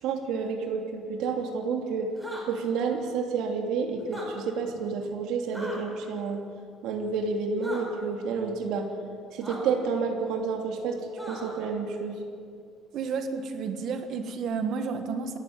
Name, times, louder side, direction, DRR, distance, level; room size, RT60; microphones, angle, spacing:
voice 1, 0.0-2.1 2.5-6.4 6.8-8.9 9.3-11.0 11.3-12.2, right 5 dB, 80° right, 2 dB, 2.9 m, -30 dB
sound 1, 2.2-2.4 4.0-4.3 5.5-5.8 7.6-7.8 9.4-9.6 11.2-11.6, equal, 5° right, 5.1 m, -39 dB
voice 2, 12.9-15.4, right 5 dB, 50° right, 7 dB, 1.5 m, -31 dB
27.5 x 13.5 x 8.9 m, 2.2 s
cardioid pair, 165°, 0 cm